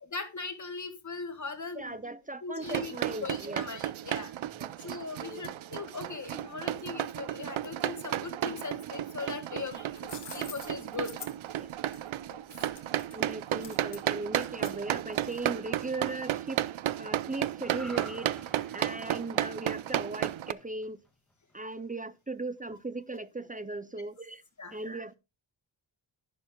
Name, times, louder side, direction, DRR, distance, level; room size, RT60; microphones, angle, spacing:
voice 1, 0.0-2.0 2.4-4.3 4.8-11.1 12.3-12.4 21.6-21.7 24.6-24.8, left 4 dB, 40° left, 1.8 m, -39 dB
voice 2, 1.7-3.6 4.6-4.7 5.2-5.5 11.6-11.7 13.1-18.4 18.7-21.0 21.5-24.4 24.7-25.1, right 2 dB, 20° right, 0.4 m, -38 dB
sound 1, 2.6-20.5, right 12 dB, 85° right, 0.6 m, -33 dB
sound 2, 9.7-15.6, left 6 dB, 60° left, 1.7 m, -48 dB
sound 3, 17.6-21.1 21.5-21.7, equal, ahead, 1.7 m, -50 dB
11.0 x 11.0 x 2.2 m
wide cardioid pair, 155°, 46 cm